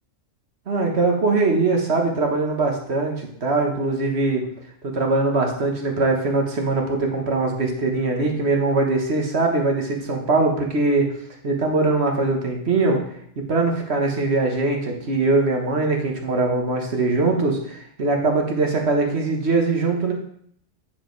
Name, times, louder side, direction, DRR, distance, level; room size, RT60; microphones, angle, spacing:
voice 1, 0.7-4.4 4.8-11.1 11.4-13.0 13.4-20.1, right 3 dB, 55° right, 1 dB, 1.6 m, -21 dB
9.4 x 5.0 x 4.7 m, 0.66 s
omnidirectional pair, 1.4 m